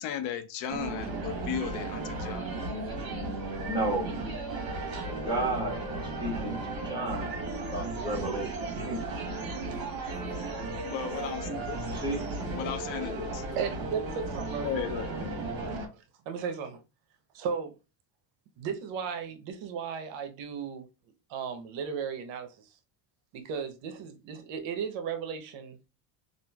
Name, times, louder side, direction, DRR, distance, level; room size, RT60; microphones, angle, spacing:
voice 1, 0.0-2.5 10.8-11.8 12.5-13.4 14.6-15.1, left 9 dB, 65° left, 0.5 m, -35 dB
sound 1, 0.7-15.9, right 2 dB, 45° right, 1.3 m, -35 dB
voice 2, 3.7-4.1 5.2-7.3 7.7-9.0 11.9-12.2, right 1 dB, 10° right, 1.3 m, -33 dB
voice 3, 13.5-14.7 15.6-16.8 17.3-17.8 18.6-20.9 21.3-22.7 23.3-25.8, right 6 dB, 60° right, 0.7 m, -35 dB
3.0 x 2.4 x 2.2 m
supercardioid pair, 110°, 50 cm